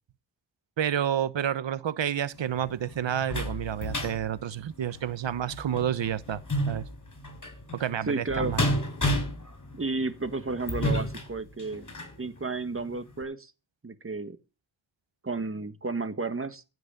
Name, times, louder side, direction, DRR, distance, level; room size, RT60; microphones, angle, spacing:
voice 1, 0.8-6.4 6.7-6.9 7.7-8.6, right 10 dB, 80° right, 1.1 m, -29 dB
sound 1, 2.3-12.2 12.7-12.9 13.2-13.3, left 1 dB, 40° left, 5.9 m, -32 dB
voice 2, 8.1-8.5 9.7-11.9 12.2-13.5 13.8-14.4 15.2-16.6, right 3 dB, 30° right, 1.6 m, -32 dB
16.0 x 6.3 x 8.9 m
wide cardioid pair, 80°, 43 cm